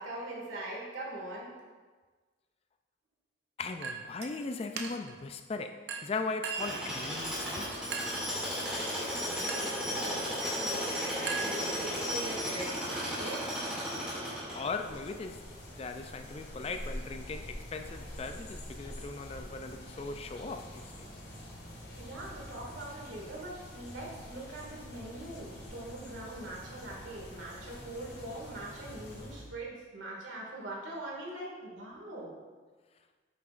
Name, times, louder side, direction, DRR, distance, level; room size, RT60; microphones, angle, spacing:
voice 1, 0.0-1.5 8.6-13.5 21.9-32.3, right 1 dB, 85° right, 2.0 m, -42 dB
voice 2, 3.6-7.8 14.5-15.5 15.8-20.9, left 3 dB, 30° left, 0.3 m, -38 dB
Chink clink, 3.8-4.3 4.8-5.2 5.9-6.9 7.9-8.3 9.5-9.8 11.3-12.1, right 5 dB, 60° right, 0.6 m, -39 dB
Tools, 6.6-14.9, equal, 5° right, 2.2 m, -35 dB
sound 1, 14.4-29.5, left 1 dB, 55° left, 1.7 m, -46 dB
8.5 x 6.8 x 2.5 m
head